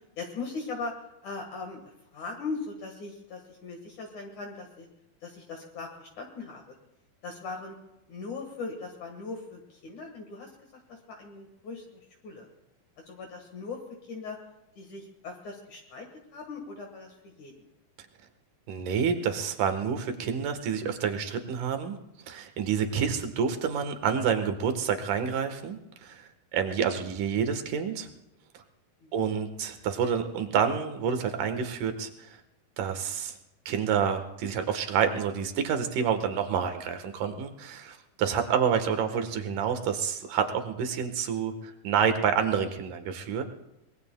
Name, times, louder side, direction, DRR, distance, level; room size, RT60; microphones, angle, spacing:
voice 1, 0.2-1.8 2.1-4.9 5.2-6.8 7.2-7.8 8.1-12.5 13.1-14.4 14.8-17.5 27.0-27.1 29.0-29.3, left 4 dB, 60° left, 2 dB, 2.7 m, -39 dB
voice 2, 18.7-22.0 22.3-28.1 28.5-28.6 29.1-32.4 32.8-33.4 33.7-43.4, right 7 dB, 65° right, 7 dB, 2.7 m, -28 dB
24.0 x 20.5 x 2.2 m, 0.92 s
omnidirectional pair, 4.3 m